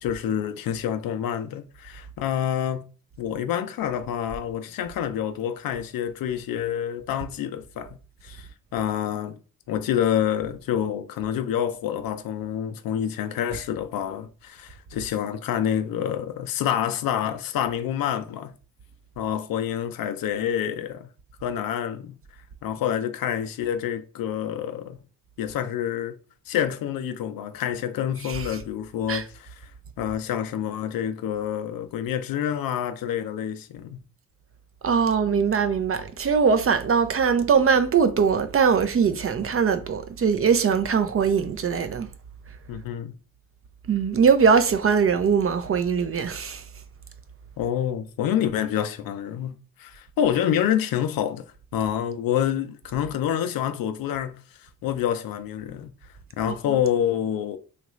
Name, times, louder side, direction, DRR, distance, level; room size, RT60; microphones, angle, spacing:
voice 1, 0.0-2.9 3.2-8.0 8.2-9.4 9.7-18.5 19.2-21.1 21.4-22.2 22.6-25.0 25.4-26.2 26.5-29.7 30.0-34.0 42.7-43.2 47.6-51.5 51.7-55.9 56.4-57.6, left 9 dB, 60° left, 0.5 m, -27 dB
voice 2, 28.2-28.6 29.1-29.2 34.8-42.1 43.9-46.6 56.5-56.8, right 6 dB, 35° right, 0.5 m, -21 dB
2.9 x 2.4 x 3.0 m
hypercardioid pair, 45°, 40 cm